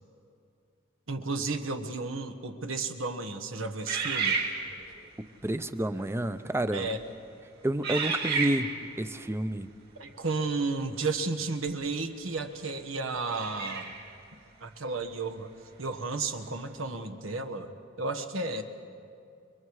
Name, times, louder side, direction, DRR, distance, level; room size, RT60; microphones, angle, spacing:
voice 1, 1.1-4.4 6.7-7.0 10.0-13.9 14.6-15.5 15.8-18.6, right 3 dB, 85° right, 7 dB, 1.4 m, -33 dB
sound 1, 3.9-5.0 5.8-6.1 6.7-7.1 7.8-9.0 11.7-11.8 13.3-14.1, right 5 dB, 55° right, 3.2 m, -31 dB
voice 2, 5.4-6.9 7.6-9.7, right 1 dB, 15° right, 11 dB, 0.6 m, -30 dB
30.0 x 22.0 x 4.8 m, 2.5 s
head